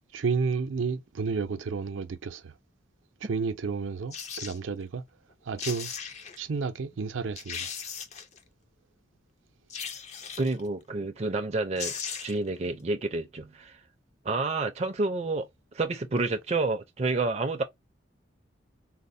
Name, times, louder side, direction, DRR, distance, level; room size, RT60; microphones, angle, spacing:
voice 1, 0.1-2.5 3.2-5.0 5.5-5.9 6.4-7.7, right 5 dB, 85° right, 0.5 m, -31 dB
sound 1, 4.1-4.6 5.3-5.4 5.6-6.4 6.9-7.0 7.4-8.4 9.7-10.6 11.4-11.5 11.8-12.5 12.8-12.9, left 6 dB, 35° left, 0.4 m, -37 dB
voice 2, 10.4-11.9 12.2-13.8 14.2-15.5 15.7-17.6, right 3 dB, 35° right, 0.4 m, -29 dB
4.1 x 2.0 x 2.6 m
head